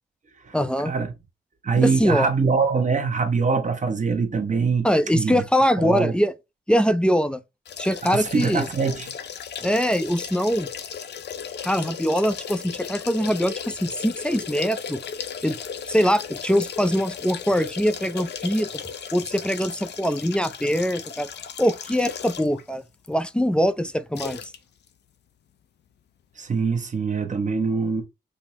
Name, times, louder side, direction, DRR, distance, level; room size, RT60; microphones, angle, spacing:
voice 1, 0.5-0.9 1.8-2.3 4.8-6.3 6.7-7.4 7.8-8.7 9.6-10.7 11.6-15.0 15.4-15.6 15.9-18.7 19.1-21.3 21.6-24.4, equal, 5° left, 0.4 m, -23 dB
voice 2, 1.6-4.9 5.1-5.4 5.8-6.1 8.0-9.1 26.4-28.0, right 5 dB, 40° right, 0.9 m, -23 dB
sound 1, 7.7-22.6 23.1-23.2 24.2-24.6 24.9-25.0, left 7 dB, 65° left, 0.4 m, -36 dB
5.2 x 2.0 x 3.0 m
cardioid pair, 70°, 19 cm